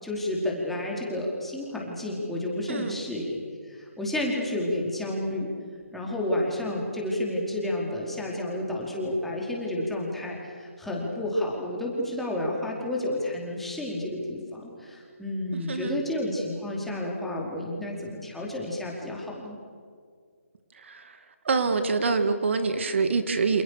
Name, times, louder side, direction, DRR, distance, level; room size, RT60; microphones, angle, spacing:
voice 1, 0.0-5.5 5.9-19.6, left 1 dB, ahead, -3 dB, 4.7 m, -31 dB
voice 2, 2.7-3.0 15.5-16.0 20.7-21.2 21.4-23.6, right 4 dB, 55° right, 8 dB, 2.4 m, -26 dB
29.0 x 28.5 x 6.8 m, 2.1 s
hypercardioid pair, 155°, 8 cm